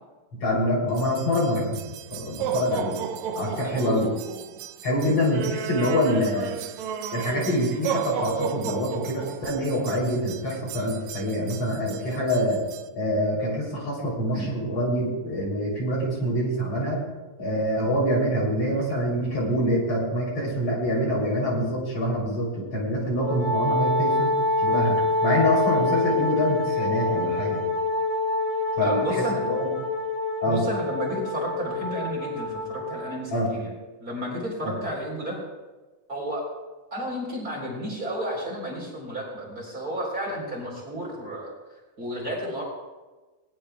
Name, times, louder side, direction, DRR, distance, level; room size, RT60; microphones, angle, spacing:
voice 1, 0.3-1.8 2.1-3.0 3.4-4.1 4.8-6.5 7.1-12.6 13.0-17.0 17.4-24.3 24.6-27.6 28.8-29.7 30.4-30.6 33.3-33.5 34.6-34.7, equal, 45° left, -3 dB, 4.1 m, -25 dB
sound 1, 0.9-12.9, right 8 dB, 80° right, 1.6 m, -34 dB
voice 2, 3.6-4.1 14.3-14.5 28.8-29.4 30.4-33.7 34.0-35.4 36.1-36.5 36.9-41.5 42.0-42.6, equal, 25° right, -4 dB, 4.0 m, -32 dB
Wind instrument woodwind instrument, 23.2-33.2, left 2 dB, 85° left, 4.5 m, -26 dB
20.5 x 18.5 x 2.3 m, 1.2 s
omnidirectional pair, 3.9 m